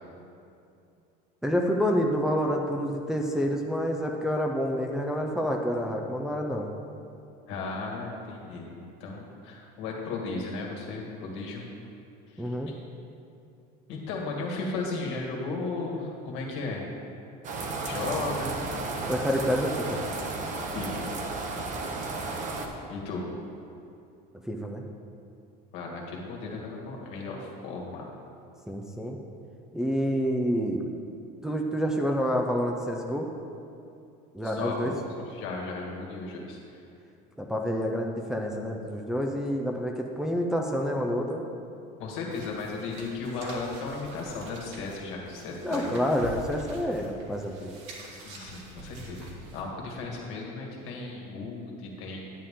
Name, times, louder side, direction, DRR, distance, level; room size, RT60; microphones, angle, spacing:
voice 1, 1.4-6.7 12.4-12.7 19.1-20.0 24.5-24.8 28.7-29.2 29.7-30.8 31.4-33.3 34.3-34.9 37.4-41.4 45.6-47.7, equal, 5° right, 0 dB, 0.6 m, -28 dB
voice 2, 7.5-11.6 12.3-12.7 13.9-16.8 17.8-18.5 20.7-21.1 22.9-23.2 25.7-28.1 34.4-36.8 42.0-45.9 48.0-52.3, left 3 dB, 70° left, -1 dB, 2.1 m, -35 dB
sound 1, 17.4-22.7, right 3 dB, 35° right, 1.0 m, -33 dB
sound 2, 42.3-49.6, right 2 dB, 75° right, 1.9 m, -45 dB
10.0 x 8.4 x 3.8 m, 2.6 s
cardioid pair, 130°, 21 cm